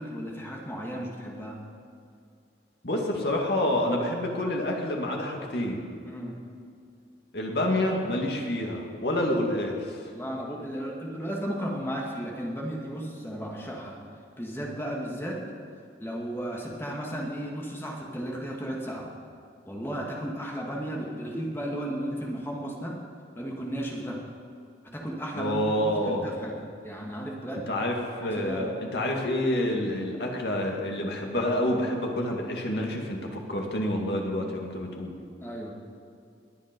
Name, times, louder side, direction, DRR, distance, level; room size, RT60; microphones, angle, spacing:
voice 1, 0.0-1.6 6.0-6.4 10.1-14.0 14.4-15.4 16.0-19.1 19.7-23.0 23.4-24.2 24.8-27.7 28.2-28.7 35.4-35.7, equal, 15° left, -1 dB, 2.0 m, -34 dB
voice 2, 2.8-5.8 7.3-10.0 25.3-26.3 27.7-35.1, left 1 dB, 65° left, 0 dB, 2.3 m, -28 dB
21.5 x 9.1 x 5.3 m, 2.4 s
head